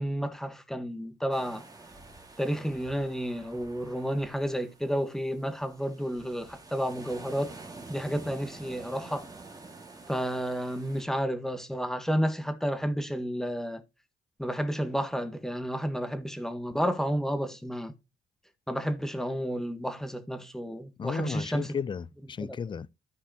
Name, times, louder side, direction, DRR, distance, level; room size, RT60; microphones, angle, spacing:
voice 1, 0.0-1.6 2.4-7.5 7.9-9.3 10.1-13.8 14.4-17.9 18.7-21.7 22.4-22.5, equal, ahead, 1.2 m, -31 dB
sound 1, 1.3-11.0, right 3 dB, 20° right, 1.9 m, -49 dB
voice 2, 21.0-22.9, left 6 dB, 25° left, 0.4 m, -34 dB
13.5 x 4.7 x 2.8 m
cardioid pair, 90°, 20 cm